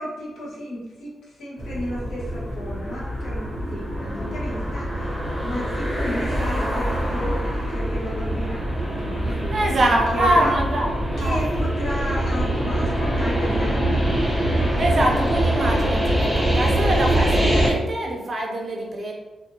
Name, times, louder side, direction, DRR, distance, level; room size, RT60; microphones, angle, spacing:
voice 1, 0.0-10.5 11.2-14.3, left 1 dB, 75° left, -6 dB, 0.9 m, -33 dB
sound 1, 1.6-17.7, right 1 dB, 15° left, 0.7 m, -24 dB
voice 2, 9.5-11.4 14.8-19.1, right 1 dB, 40° right, 0 dB, 0.5 m, -24 dB
2.7 x 2.5 x 2.6 m, 1.1 s
wide cardioid pair, 180°, 0 cm